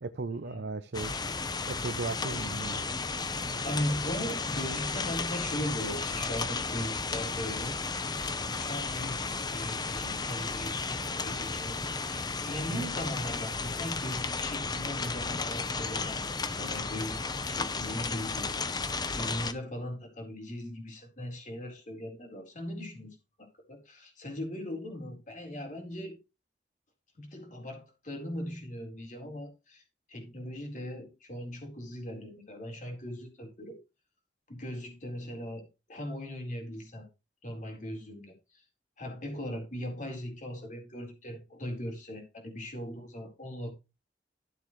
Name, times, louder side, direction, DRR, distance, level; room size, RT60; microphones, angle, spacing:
voice 1, 0.0-1.1 1.7-2.9 3.4-3.6 12.7-12.9, right 3 dB, 70° right, 0.7 m, -36 dB
sound 1, 0.9-19.5, left 4 dB, 25° left, 0.8 m, -34 dB
voice 2, 2.3-2.8 3.4-8.1 8.6-18.5 19.1-26.2 27.2-29.8 30.1-33.8 34.5-37.1 37.4-38.6 39.0-43.7, left 1 dB, 45° left, 4.2 m, -39 dB
13.5 x 7.4 x 3.2 m
head